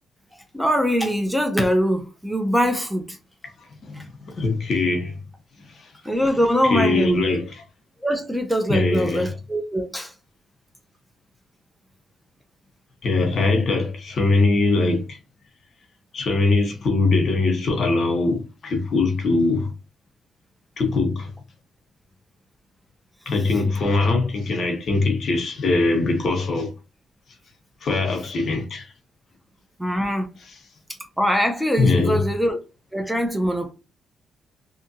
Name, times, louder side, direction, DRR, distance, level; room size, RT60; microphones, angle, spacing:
voice 1, 0.5-3.2 3.9-4.0 6.0-7.2 8.0-10.1 29.8-30.3 31.2-32.6 32.9-33.7, equal, ahead, 0.5 m, -22 dB
voice 2, 3.8-5.2 5.8-5.9 6.7-7.6 8.7-9.3 13.0-15.2 16.1-19.7 20.8-21.3 23.3-26.7 27.8-28.9 31.8-32.2, left 3 dB, 55° left, 0.9 m, -22 dB
2.7 x 2.4 x 2.7 m
cardioid pair, 90°, 0 cm